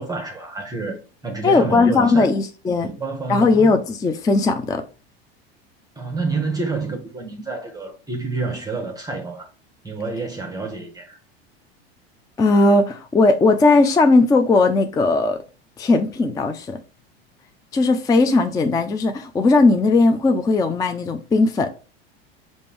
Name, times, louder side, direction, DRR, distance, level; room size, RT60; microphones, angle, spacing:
voice 1, 0.0-2.3 2.8-3.7 6.0-9.5 9.8-11.2, right 3 dB, 10° right, 0.9 m, -28 dB
voice 2, 1.4-2.9 3.3-4.8 12.4-15.4 15.8-16.8 17.7-21.7, left 3 dB, 10° left, 0.3 m, -17 dB
5.1 x 2.6 x 3.3 m
hypercardioid pair, 95°, 31 cm